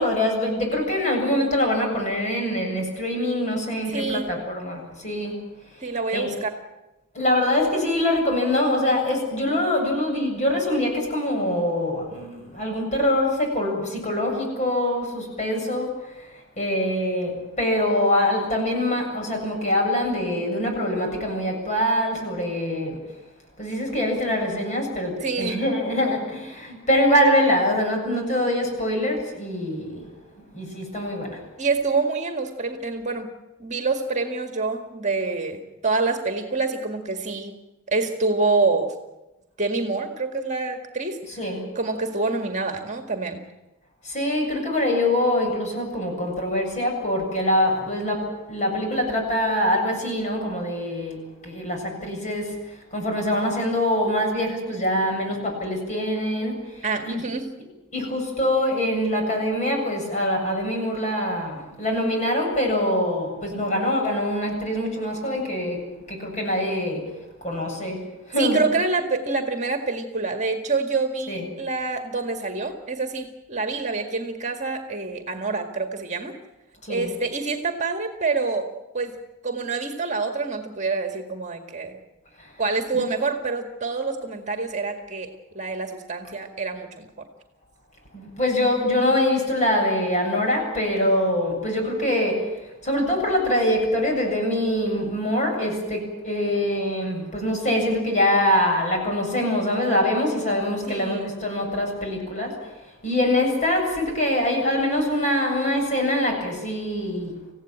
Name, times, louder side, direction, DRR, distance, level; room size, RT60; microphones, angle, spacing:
voice 1, 0.0-5.4 6.1-6.3 7.1-23.0 23.6-30.1 30.5-31.4 41.4-41.6 44.0-51.2 51.4-57.2 57.9-65.8 66.1-67.1 67.4-68.0 68.3-68.6 71.3-71.5 76.8-77.1 82.4-82.5 82.9-83.0 88.1-92.5 92.8-102.5 103.0-107.3, left 1 dB, 35° left, 2 dB, 7.5 m, -24 dB
voice 2, 3.9-4.3 5.8-6.5 25.2-25.6 26.0-26.2 31.6-33.3 33.6-37.6 37.9-38.9 39.6-41.2 41.8-43.4 56.8-57.5 68.4-76.3 76.9-78.7 78.9-79.2 79.4-82.0 82.6-87.3 100.9-101.3, right 3 dB, 35° right, 5 dB, 1.9 m, -26 dB
26.5 x 16.5 x 8.9 m, 1.0 s
head